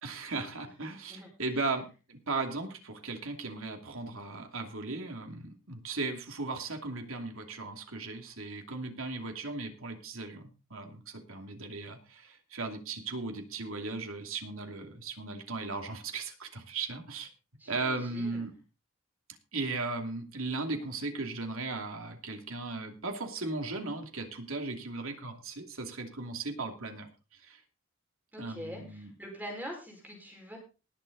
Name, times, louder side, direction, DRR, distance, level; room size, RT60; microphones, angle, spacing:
voice 1, 0.0-17.3 17.7-18.5 19.5-27.1 27.4-27.6 28.4-29.1, right 3 dB, 75° right, 4 dB, 2.7 m, -37 dB
voice 2, 17.6-18.5 28.3-30.6, equal, 10° right, 1 dB, 4.9 m, -44 dB
19.0 x 7.8 x 4.0 m, 0.32 s
head